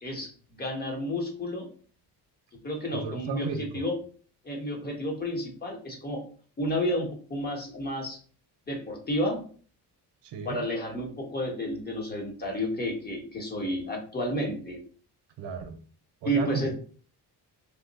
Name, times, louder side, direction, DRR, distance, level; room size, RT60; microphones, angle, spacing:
voice 1, 0.0-1.7 2.6-3.5 3.7-4.0 4.4-6.2 6.6-8.2 8.7-9.4 10.4-14.8 16.2-16.7, equal, 25° left, 1 dB, 0.9 m, -31 dB
voice 2, 2.9-3.8 10.2-10.6 15.4-15.8 16.2-16.7, right 5 dB, 80° right, 8 dB, 0.7 m, -34 dB
2.8 x 2.1 x 3.9 m, 0.42 s
cardioid pair, 155°, 40 cm